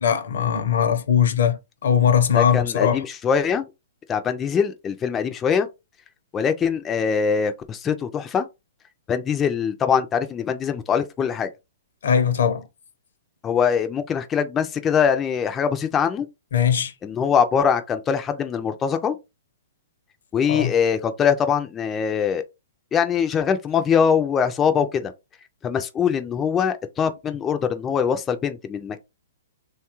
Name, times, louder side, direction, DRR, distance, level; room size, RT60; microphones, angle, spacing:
voice 1, 0.0-3.0 12.0-12.6 16.5-16.9 20.5-20.7, left 8 dB, 70° left, 0.6 m, -20 dB
voice 2, 2.3-3.6 4.1-5.7 6.3-8.5 9.1-11.5 13.4-16.3 17.0-19.2 20.3-22.4 22.9-25.1 25.6-29.0, left 7 dB, 15° left, 0.3 m, -22 dB
3.0 x 2.3 x 2.9 m
hypercardioid pair, 145°, 0 cm